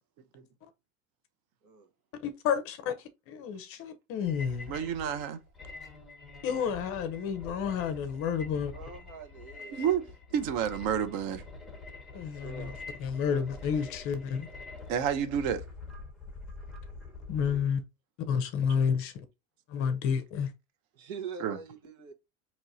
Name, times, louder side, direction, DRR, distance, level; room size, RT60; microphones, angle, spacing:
voice 1, 2.2-2.9 3.3-4.7 6.4-8.7 12.1-12.7 13.0-14.5 17.3-17.8 18.3-19.1 19.7-20.5, left 7 dB, 35° left, 0.6 m, -30 dB
sound 1, 4.2-17.6, left 3 dB, ahead, 0.9 m, -46 dB
voice 2, 4.7-5.4 9.7-10.0 10.3-11.4 14.9-15.6 21.4-21.6, right 8 dB, 45° right, 0.7 m, -29 dB
voice 3, 8.7-10.0 10.3-10.4 12.1-12.8 13.2-13.4 13.8-13.9 20.9-22.1, right 5 dB, 75° right, 1.3 m, -44 dB
4.4 x 3.0 x 2.6 m
supercardioid pair, 150°, 42 cm